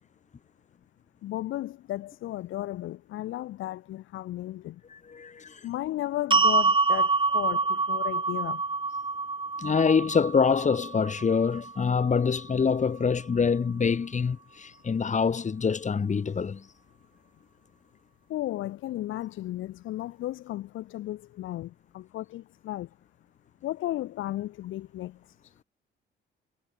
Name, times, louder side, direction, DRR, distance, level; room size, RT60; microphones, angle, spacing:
voice 1, 1.2-4.7 5.6-8.6 18.3-22.9 23.6-25.1, left 14 dB, 85° left, 1.6 m, -34 dB
voice 2, 4.9-5.6 9.6-16.6, left 5 dB, 40° left, 2.3 m, -25 dB
sound 1, 6.3-12.5, right 3 dB, 25° right, 3.5 m, -27 dB
cardioid pair, 90°, 20 cm